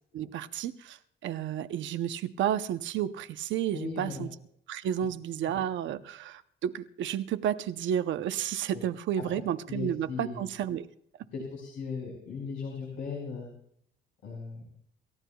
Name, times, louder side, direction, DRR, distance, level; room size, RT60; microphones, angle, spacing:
voice 1, 0.1-4.3 4.7-10.9, right 10 dB, 70° right, 0.8 m, -31 dB
voice 2, 3.7-4.3 8.7-8.8 9.2-9.3 9.7-10.4 11.3-13.5 14.2-14.6, left 5 dB, 80° left, 5.1 m, -37 dB
28.5 x 14.5 x 2.3 m
cardioid pair, 160°, 20 cm